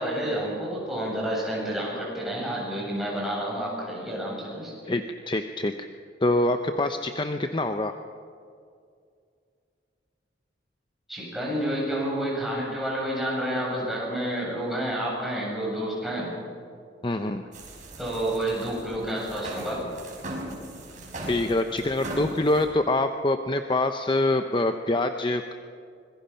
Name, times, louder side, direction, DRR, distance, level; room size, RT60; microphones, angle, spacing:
voice 1, 0.0-4.9 11.1-16.3 18.0-19.8, right 1 dB, ahead, -5 dB, 7.9 m, -29 dB
voice 2, 4.8-5.9 6.2-8.0 17.0-17.4 21.3-25.5, left 2 dB, 25° left, 7 dB, 0.7 m, -25 dB
sound 1, 17.5-22.6, right 1 dB, 40° right, 5.5 m, -39 dB
25.5 x 22.0 x 5.7 m, 2.3 s
head